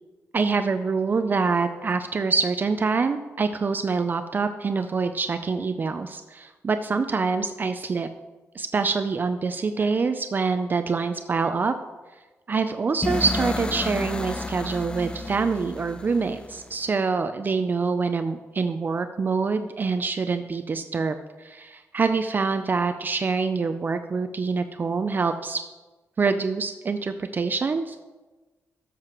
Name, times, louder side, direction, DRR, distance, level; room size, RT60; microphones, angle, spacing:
voice 1, 0.3-8.1 8.5-11.7 12.5-25.6 26.2-28.0, right 4 dB, 40° right, 8 dB, 0.4 m, -25 dB
sound 1, 13.0-16.9, left 2 dB, 20° left, 0.5 m, -31 dB
12.5 x 7.5 x 3.0 m, 1.2 s
cardioid pair, 110°, 5 cm